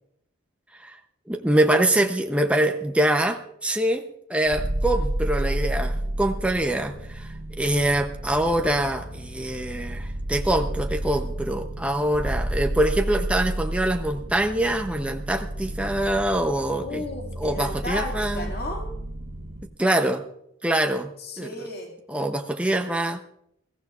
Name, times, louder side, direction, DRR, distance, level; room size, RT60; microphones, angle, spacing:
voice 1, 1.3-17.0 17.4-18.5 19.8-20.2 20.6-21.1 21.4-21.5 22.1-23.2, right 1 dB, 5° right, 4 dB, 0.6 m, -24 dB
sound 1, 4.5-19.7, right 1 dB, 75° right, 1.1 m, -31 dB
voice 2, 16.8-18.9 21.2-21.9, left 2 dB, 50° left, 0 dB, 2.1 m, -34 dB
21.0 x 15.0 x 2.4 m, 0.75 s
head